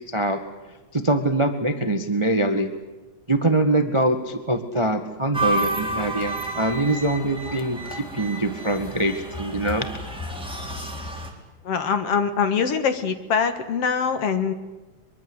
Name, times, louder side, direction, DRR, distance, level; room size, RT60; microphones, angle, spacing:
voice 1, 0.1-0.4 0.9-2.7 3.3-9.9, right 1 dB, 20° right, 8 dB, 0.7 m, -23 dB
sound 1, 5.3-11.3, right 2 dB, ahead, 3.4 m, -30 dB
voice 2, 11.6-14.5, left 6 dB, 55° left, 9 dB, 2.3 m, -23 dB
23.5 x 23.0 x 8.0 m, 1.2 s
omnidirectional pair, 3.4 m